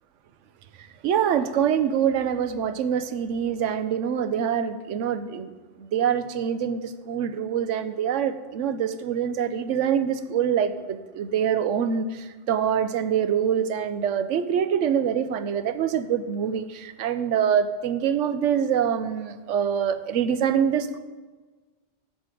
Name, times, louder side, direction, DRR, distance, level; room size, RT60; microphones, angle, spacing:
voice 1, 1.0-5.5 5.8-12.1 12.5-21.0, right 8 dB, 85° right, 12 dB, 1.0 m, -25 dB
10.5 x 6.8 x 5.1 m, 1.3 s
omnidirectional pair, 1.2 m